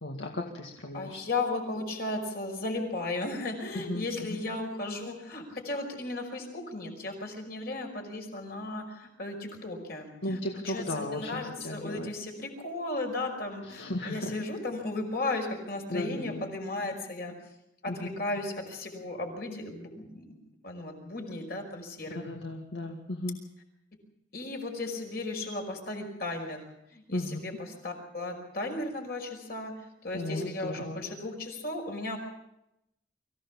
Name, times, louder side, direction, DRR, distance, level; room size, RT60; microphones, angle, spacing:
voice 1, 0.0-1.3 3.7-4.4 10.2-12.1 13.6-14.4 15.9-16.4 17.9-18.1 22.1-23.4 27.1-27.4 30.1-31.0, left 1 dB, 85° left, 1 dB, 2.1 m, -35 dB
voice 2, 0.9-10.4 10.7-17.3 17.8-20.4 20.6-22.2 24.3-26.7 26.9-27.5 27.8-32.2, left 2 dB, 55° left, 2 dB, 5.4 m, -35 dB
24.5 x 15.5 x 7.3 m, 0.83 s
head